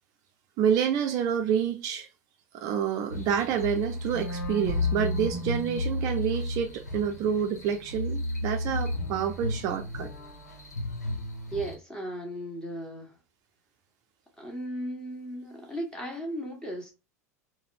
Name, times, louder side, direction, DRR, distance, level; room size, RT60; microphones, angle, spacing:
voice 1, 0.6-2.1 2.5-10.1, right 8 dB, 45° right, 0.5 m, -28 dB
sound 1, 3.1-11.7, left 2 dB, 85° left, 0.9 m, -33 dB
voice 2, 11.5-13.2 14.4-16.9, right 1 dB, 10° left, 1.5 m, -36 dB
4.0 x 2.1 x 2.5 m
figure-of-eight pair, 80°, 9 cm